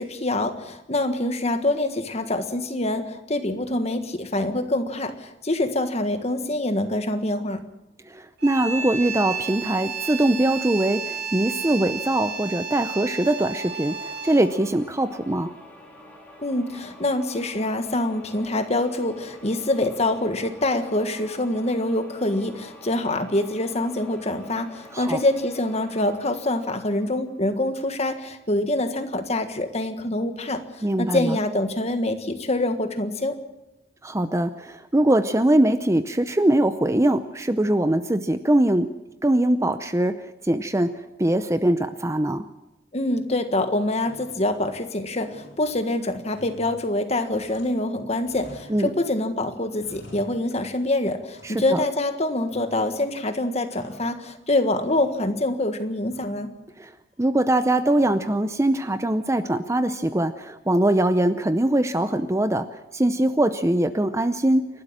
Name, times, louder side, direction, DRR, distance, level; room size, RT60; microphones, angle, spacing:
voice 1, 0.0-7.6 16.4-33.4 42.9-56.5, left 1 dB, 35° left, 8 dB, 1.6 m, -25 dB
voice 2, 8.1-15.5 24.9-25.2 30.8-31.3 34.0-38.9 39.2-42.5 48.7-48.9 51.4-51.8 56.8-56.9 57.2-64.7, right 1 dB, 15° right, 11 dB, 0.6 m, -22 dB
sound 1, 8.4-14.6, right 6 dB, 60° right, 3.4 m, -32 dB
sound 2, 13.2-27.8, left 1 dB, 10° left, 3.9 m, -48 dB
sound 3, 43.0-43.6 44.0-44.9 45.2-47.9 48.2-49.2 49.5-50.9 51.3-52.0 52.5-53.1 53.4-54.5 54.8-55.5 56.1-56.5 57.9-58.4, left 1 dB, 55° left, 7.6 m, -50 dB
28.5 x 12.5 x 7.5 m, 0.97 s
head